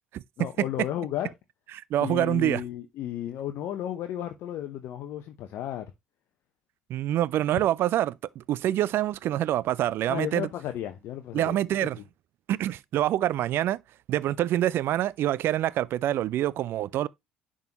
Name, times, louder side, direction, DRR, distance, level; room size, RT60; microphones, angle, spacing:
voice 1, 0.4-1.3 2.0-5.9 10.1-11.6 12.0-12.1, left 11 dB, 60° left, 0.7 m, -33 dB
voice 2, 1.9-2.6 6.9-10.5 11.3-12.0 12.5-13.8 14.1-17.1, right 13 dB, 55° right, 0.4 m, -26 dB
10.5 x 3.8 x 2.9 m
figure-of-eight pair, 55°, 5 cm